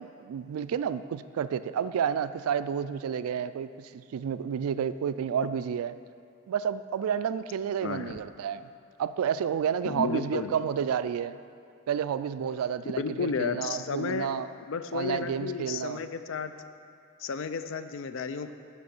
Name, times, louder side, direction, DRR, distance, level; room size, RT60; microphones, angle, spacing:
voice 1, 0.0-6.0 6.5-8.7 9.0-11.4 11.9-14.5 14.9-16.0, right 8 dB, 80° right, 15 dB, 0.3 m, -30 dB
voice 2, 7.8-8.1 9.9-10.5 13.0-14.3 14.7-16.5 17.2-18.5, left 5 dB, 60° left, 10 dB, 0.4 m, -32 dB
10.5 x 4.4 x 5.4 m, 2.5 s
head